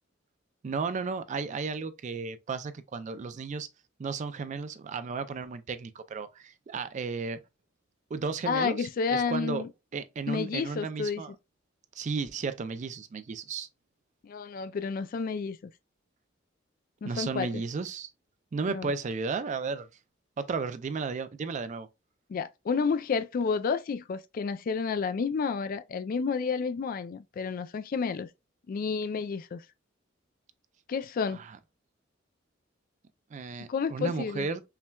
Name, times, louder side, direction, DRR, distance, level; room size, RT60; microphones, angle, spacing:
voice 1, 0.6-3.7 4.0-7.4 8.1-9.6 9.9-11.3 12.0-13.7 17.0-18.1 18.5-19.9 20.4-21.9 31.3-31.6 33.3-34.6, right 4 dB, 40° right, 0.3 m, -34 dB
voice 2, 8.5-9.7 10.3-11.2 14.2-15.6 17.0-17.6 18.7-18.9 22.3-28.3 28.7-29.6 30.9-31.4 33.7-34.5, left 5 dB, 45° left, 0.3 m, -30 dB
5.6 x 2.2 x 2.2 m
head